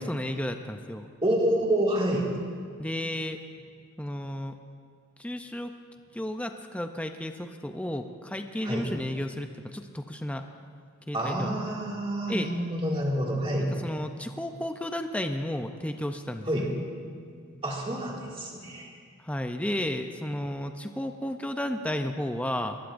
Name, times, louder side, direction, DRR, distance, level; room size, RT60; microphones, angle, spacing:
voice 1, 0.0-1.1 2.8-3.4 4.0-4.5 5.2-5.7 6.1-10.4 11.1-11.5 12.3-12.5 13.8-16.7 19.2-22.8, left 1 dB, 5° left, 6 dB, 0.5 m, -33 dB
voice 2, 1.2-2.3 8.6-8.9 11.1-13.7 16.4-16.7 17.6-18.9, right 1 dB, 25° right, -3 dB, 2.2 m, -28 dB
22.0 x 19.5 x 2.6 m, 2.1 s
head